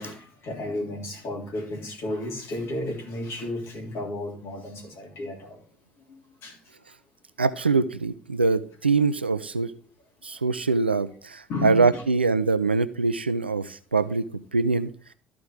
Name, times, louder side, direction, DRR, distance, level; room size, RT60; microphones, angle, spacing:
voice 1, 0.0-5.6 6.4-6.6 11.5-12.0, left 1 dB, 50° left, 3.3 m, -33 dB
voice 2, 7.4-9.7 10.2-14.9, right 4 dB, 90° right, 0.4 m, -23 dB
13.0 x 4.8 x 3.7 m
figure-of-eight pair, 55°, 6 cm